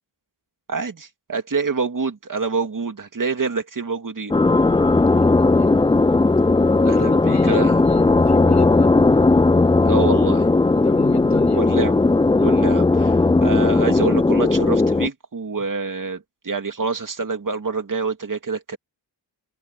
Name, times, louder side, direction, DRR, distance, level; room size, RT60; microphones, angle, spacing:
voice 1, 0.7-4.3 6.9-7.7 9.8-10.5 11.5-12.0 12.4-18.8, right 4 dB, 45° right, 2.4 m, -26 dB
sound 1, 4.3-15.1, left 3 dB, 10° left, 0.3 m, -17 dB
voice 2, 4.8-6.2 6.8-8.9 10.7-11.6, left 3 dB, 35° left, 7.1 m, -35 dB
wide cardioid pair, 125°, 46 cm